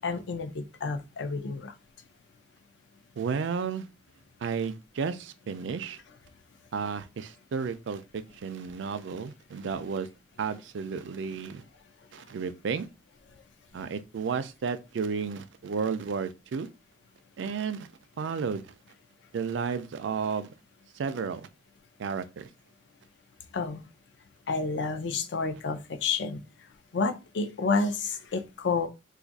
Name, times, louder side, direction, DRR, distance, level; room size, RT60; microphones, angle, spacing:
voice 1, 0.0-1.7 23.5-23.9 24.5-26.4 26.9-28.9, left 4 dB, 70° left, 0.5 m, -30 dB
voice 2, 3.2-3.9 4.4-6.0 6.7-10.1 10.4-11.6 12.1-12.9 13.7-16.7 17.4-17.9 18.2-18.7 19.3-20.5 20.9-21.5 22.0-22.5, right 5 dB, 75° right, 0.4 m, -32 dB
2.6 x 2.4 x 3.9 m
head